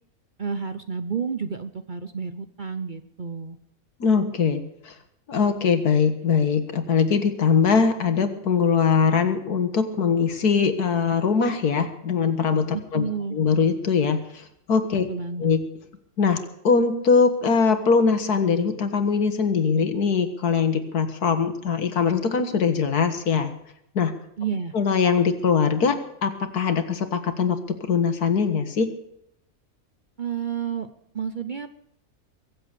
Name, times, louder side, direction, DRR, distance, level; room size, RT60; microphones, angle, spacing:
voice 1, 0.4-3.6 12.7-13.4 15.1-15.5 24.4-24.7 30.2-31.7, right 6 dB, 40° right, 10 dB, 0.8 m, -30 dB
voice 2, 4.0-5.0 5.3-13.0 13.3-15.1 15.4-15.7 16.2-23.5 23.9-24.2 24.7-26.0 26.2-27.6 27.9-28.9, left 5 dB, 85° left, 8 dB, 2.2 m, -22 dB
23.0 x 8.0 x 6.8 m, 0.76 s
omnidirectional pair, 1.6 m